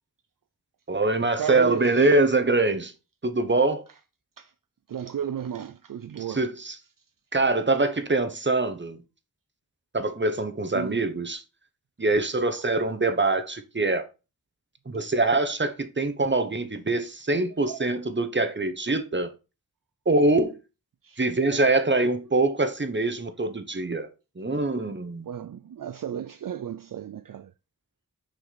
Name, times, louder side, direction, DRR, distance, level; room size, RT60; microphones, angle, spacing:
voice 1, 0.9-2.9 3.2-3.9 6.3-6.8 7.3-9.0 9.9-11.4 12.0-14.0 14.9-19.3 20.1-20.6 21.2-24.1 24.4-25.3, right 2 dB, 30° right, 1.0 m, -24 dB
voice 2, 1.4-2.1 4.4-4.5 4.9-6.4 7.7-7.8 10.7-11.0 17.6-17.9 21.0-21.2 25.3-27.5, right 9 dB, 60° right, 0.5 m, -34 dB
6.2 x 5.1 x 4.1 m
wide cardioid pair, 60°, 38 cm